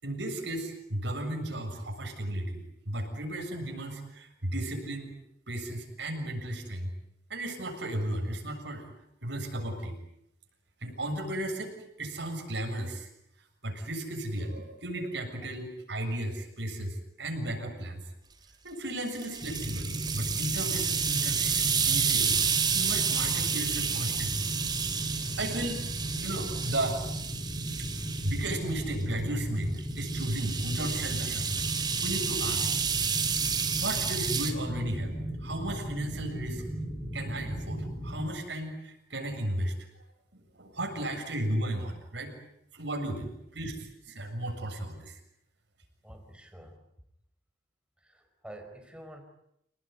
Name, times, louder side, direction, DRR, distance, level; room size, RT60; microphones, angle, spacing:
voice 1, 0.0-2.6 2.9-5.1 5.5-6.9 7.3-8.8 9.2-10.0 10.8-13.1 13.6-18.0 18.6-22.4 22.7-24.5 24.9-25.1 25.4-25.8 26.2-27.0 28.2-31.6 32.0-32.7 33.8-35.1 35.4-36.6 37.1-39.7 40.3-42.3 42.7-45.2, right 1 dB, 75° right, 3 dB, 7.3 m, -34 dB
sound 1, 19.1-28.6 29.8-34.5, right 6 dB, 25° right, 3.2 m, -30 dB
sound 2, 19.4-38.3, equal, 15° left, 4.2 m, -37 dB
voice 2, 46.0-46.8 48.0-49.2, right 1 dB, 5° right, 4 dB, 4.8 m, -48 dB
28.5 x 19.5 x 9.6 m, 0.78 s
head